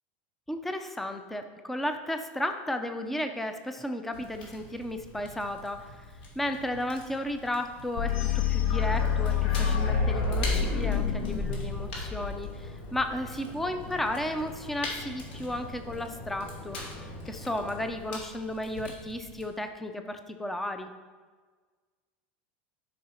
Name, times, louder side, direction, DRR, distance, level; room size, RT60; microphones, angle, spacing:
voice 1, 0.5-6.1 6.4-20.9, left 1 dB, 5° left, 7 dB, 0.4 m, -34 dB
Fire, 4.1-19.5, left 2 dB, 85° left, 2.6 m, -45 dB
sound 1, 8.0-12.9, left 6 dB, 70° left, 1.1 m, -27 dB
sound 2, 8.7-17.9, left 2 dB, 50° left, 2.2 m, -43 dB
12.5 x 5.5 x 4.3 m, 1.4 s
supercardioid pair, 180°, 6 cm